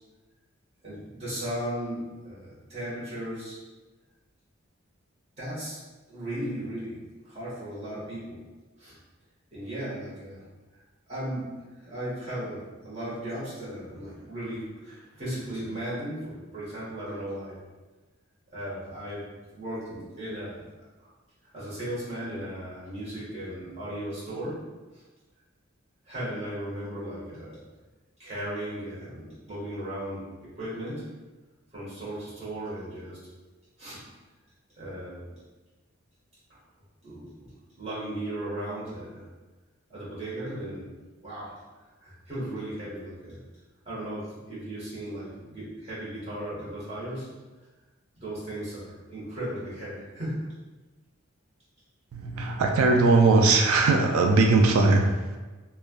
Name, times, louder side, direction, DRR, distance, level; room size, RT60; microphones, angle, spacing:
voice 1, 0.8-3.6 5.4-5.8 6.1-8.4 8.8-9.0 9.5-10.5 11.1-17.6 18.5-19.2 19.5-20.6 21.5-24.6 24.9-25.0 26.0-27.6 28.2-31.1 31.7-33.2 33.8-34.0 34.8-35.2 36.5-36.6 37.0-37.5 37.8-39.2 39.9-41.5 42.0-43.4 43.8-47.3 48.2-50.5, right 1 dB, 30° right, -9 dB, 1.2 m, -36 dB
voice 2, 52.1-55.4, right 3 dB, 90° right, 3 dB, 0.3 m, -20 dB
3.1 x 2.3 x 2.2 m, 1.2 s
head